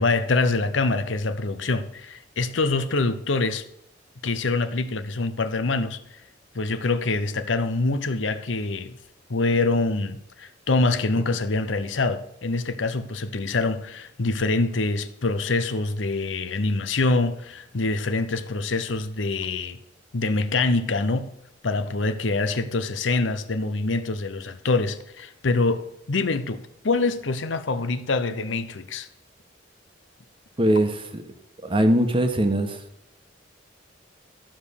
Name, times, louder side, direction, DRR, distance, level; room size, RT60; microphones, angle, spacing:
voice 1, 0.0-3.6 4.2-6.0 6.5-8.9 9.3-19.8 20.1-21.3 21.6-29.1, left 3 dB, 80° left, 0.8 m, -25 dB
voice 2, 30.6-31.2 31.6-32.8, right 1 dB, 30° right, 1.2 m, -21 dB
13.0 x 5.1 x 6.9 m
head